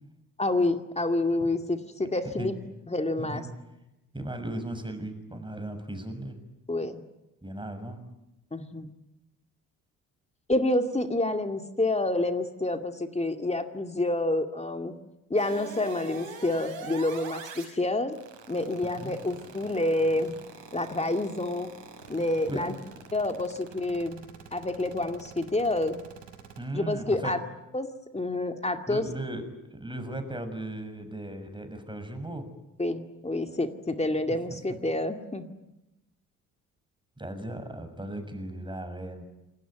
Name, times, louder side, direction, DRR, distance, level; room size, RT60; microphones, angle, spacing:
voice 1, 0.4-2.6 2.9-3.4 6.7-7.0 8.5-8.9 10.5-15.0 15.3-18.1 18.5-20.4 20.7-21.7 22.1-22.7 23.1-24.2 24.5-26.0 26.7-27.4 27.7-27.9 28.1-29.1 32.8-35.5, left 2 dB, 15° left, 6 dB, 2.4 m, -28 dB
voice 2, 4.1-6.4 7.4-8.0 19.0-19.2 22.5-22.8 26.6-27.3 28.9-32.5 37.2-39.2, right 1 dB, 10° right, 8 dB, 6.6 m, -36 dB
sound 1, 15.4-17.7 18.1-26.6, right 5 dB, 80° right, 6.3 m, -43 dB
28.0 x 19.5 x 9.4 m, 0.94 s
hypercardioid pair, 50°, 40 cm